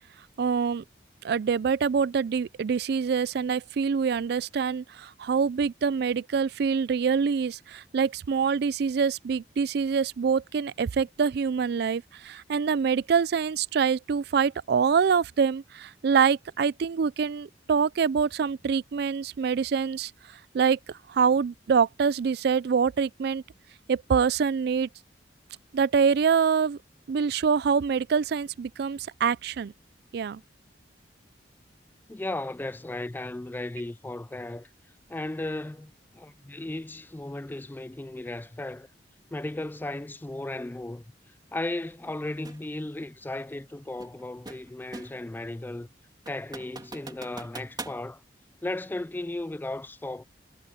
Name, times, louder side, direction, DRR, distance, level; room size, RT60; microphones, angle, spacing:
voice 1, 0.4-0.8 1.2-20.1 20.5-23.4 23.9-24.9 25.7-26.8 27.1-29.7 30.1-30.4, right 6 dB, 65° right, 0.4 m, -25 dB
voice 2, 32.1-34.7 35.1-38.9 39.3-41.0 41.5-45.9 46.3-48.2 48.6-50.2, left 2 dB, 10° left, 0.3 m, -35 dB
sound 1, 42.4-42.7 44.0-45.3 45.7-45.8 46.3-48.0, right 3 dB, 25° right, 3.0 m, -42 dB
head